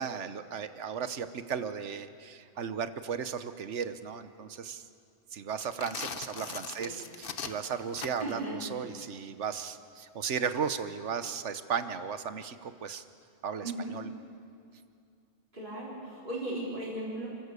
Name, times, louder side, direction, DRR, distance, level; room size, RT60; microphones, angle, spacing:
voice 1, 0.0-4.8 5.3-13.0 13.4-14.1, right 7 dB, 75° right, 11 dB, 1.3 m, -35 dB
sound 1, 5.5-8.4, left 6 dB, 50° left, 1.1 m, -40 dB
voice 2, 8.2-8.7 13.6-13.9 15.5-17.3, right 1 dB, 40° right, -9 dB, 4.3 m, -37 dB
29.5 x 14.0 x 8.3 m, 2.4 s
omnidirectional pair, 1.2 m